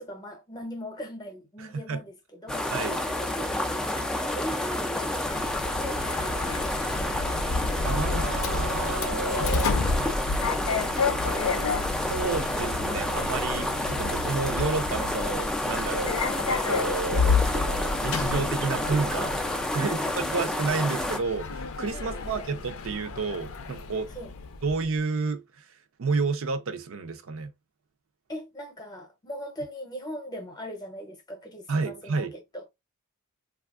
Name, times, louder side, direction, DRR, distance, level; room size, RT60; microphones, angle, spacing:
voice 1, 0.0-2.7 3.2-6.6 19.7-20.3 21.9-22.6 24.1-24.3 28.3-32.7, equal, 20° left, 0.7 m, -40 dB
voice 2, 1.6-2.0 2.7-3.0 7.8-9.7 10.0-10.1 12.1-16.1 16.5-19.3 19.7-24.1 24.6-25.7 26.0-27.5 31.7-32.3, right 4 dB, 65° right, 0.5 m, -30 dB
sound 1, 2.5-21.2, left 1 dB, 5° left, 0.3 m, -29 dB
Sliding door, 5.3-24.9, left 4 dB, 70° left, 0.5 m, -31 dB
sound 2, 6.4-19.3, right 2 dB, 80° right, 0.9 m, -46 dB
3.3 x 2.4 x 2.3 m
head